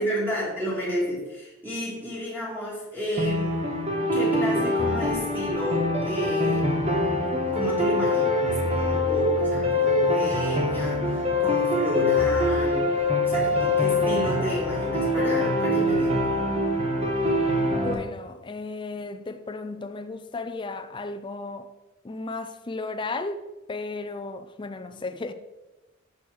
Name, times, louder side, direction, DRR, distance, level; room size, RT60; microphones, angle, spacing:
voice 1, 0.0-3.6 4.1-6.8 7.5-16.3 24.9-25.0, equal, 10° right, 1.9 m, -31 dB
sound 1, 3.2-17.9, left 2 dB, 30° right, 1.1 m, -24 dB
voice 2, 17.6-21.7 22.0-25.3, left 3 dB, 25° left, 0.4 m, -34 dB
7.0 x 6.2 x 4.9 m
head